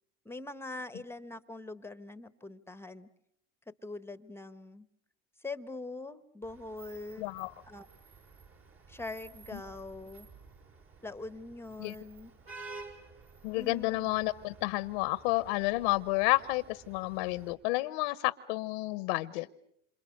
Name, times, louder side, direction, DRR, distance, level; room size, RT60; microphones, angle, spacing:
voice 1, 0.2-3.1 3.7-4.9 5.4-7.3 7.6-7.9 8.9-10.3 11.0-12.3 13.5-14.1, left 2 dB, 10° left, 14 dB, 1.1 m, -43 dB
Vehicle horn car horn honking / Traffic noise roadway noise, 6.4-17.5, right 3 dB, 50° right, 6.2 m, -52 dB
voice 2, 7.2-7.5 11.8-11.9 13.4-19.5, left 21 dB, 75° left, 16 dB, 0.9 m, -30 dB
27.5 x 27.5 x 6.5 m, 0.71 s
supercardioid pair, 105°, 29 cm